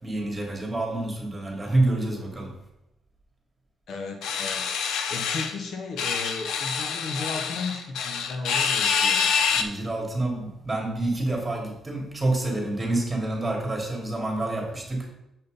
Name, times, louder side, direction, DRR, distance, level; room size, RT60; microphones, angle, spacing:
voice 1, 0.0-2.5 9.5-15.1, right 2 dB, 15° right, 0 dB, 3.3 m, -28 dB
voice 2, 3.9-9.4, left 4 dB, 65° left, 5 dB, 1.1 m, -35 dB
sound 1, 4.2-5.5 6.0-9.6, left 6 dB, 80° left, 0.8 m, -26 dB
7.7 x 5.5 x 5.3 m, 0.87 s
cardioid pair, 90°, 0 cm